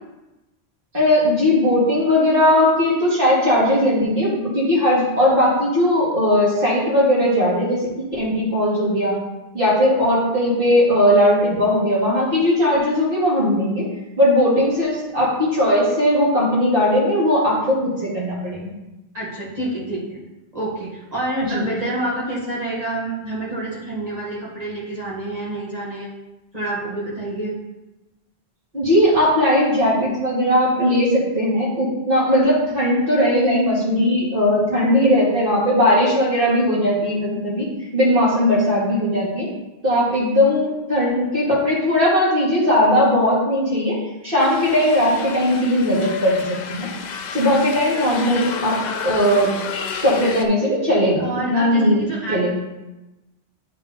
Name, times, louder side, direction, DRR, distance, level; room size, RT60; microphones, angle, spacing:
voice 1, 0.9-9.2 9.5-13.9 14.2-18.6 21.4-21.6 28.7-37.7 37.9-39.5 39.8-44.0 44.2-46.9 47.3-49.5 50.0-52.0 52.3-52.5, left 1 dB, 55° right, -7 dB, 2.6 m, -18 dB
voice 2, 19.1-20.2 20.5-26.1 26.5-27.5 51.2-52.5, right 2 dB, 35° right, -8 dB, 1.7 m, -27 dB
sound 1, 44.4-50.5, left 6 dB, 55° left, 0.5 m, -31 dB
8.9 x 3.5 x 3.9 m, 1.0 s
omnidirectional pair, 1.1 m